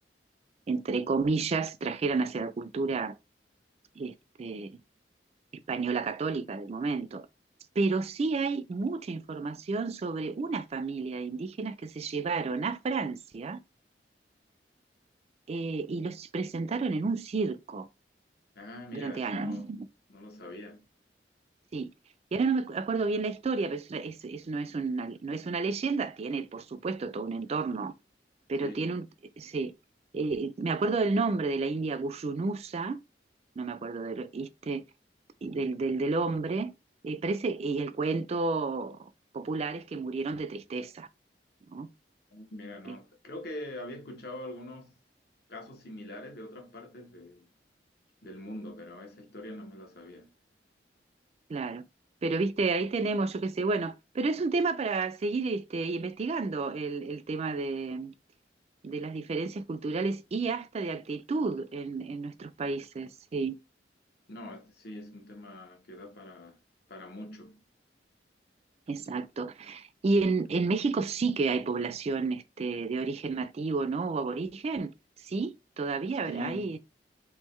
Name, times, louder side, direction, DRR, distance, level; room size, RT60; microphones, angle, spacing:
voice 1, 0.7-3.1 4.0-4.8 5.7-7.3 7.8-13.6 15.5-17.9 18.9-19.9 21.7-21.9 22.3-27.9 28.5-29.1 29.4-29.7 30.1-33.0 33.6-34.8 35.4-36.7 37.0-41.1 41.7-41.9 42.9-43.0 51.5-51.8 52.2-58.1 58.8-63.6 68.9-74.9 75.2-76.8, right 3 dB, 35° right, 0.3 m, -31 dB
voice 2, 18.5-19.8 20.1-20.9 28.6-29.0 42.3-44.9 45.5-47.5 48.2-50.3 64.3-66.6 66.9-67.6 76.2-76.8, left 1 dB, 65° left, 1.0 m, -43 dB
3.6 x 2.9 x 3.1 m
head